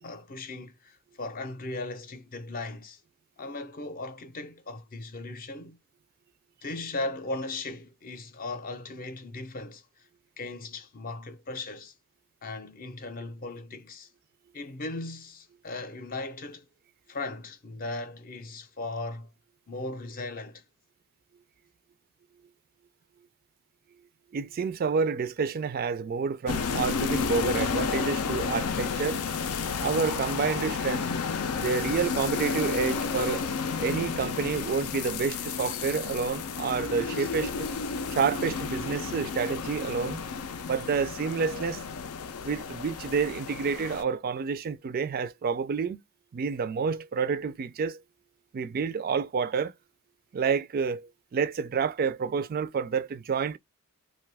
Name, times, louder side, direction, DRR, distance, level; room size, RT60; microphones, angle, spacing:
voice 1, 0.0-3.0 3.4-5.8 6.6-9.8 10.4-11.9 12.4-14.1 14.5-16.7 17.1-19.3 19.7-20.6, left 2 dB, 40° left, 0.6 m, -37 dB
voice 2, 24.3-29.3 29.8-31.1 31.6-33.5 33.8-37.7 38.1-40.2 40.7-41.8 42.4-46.0 46.3-48.0 48.5-49.7 50.3-53.6, right 5 dB, 45° right, 0.3 m, -29 dB
sound 1, 26.5-44.0, left 5 dB, 80° left, 0.5 m, -32 dB
2.6 x 2.3 x 3.3 m
head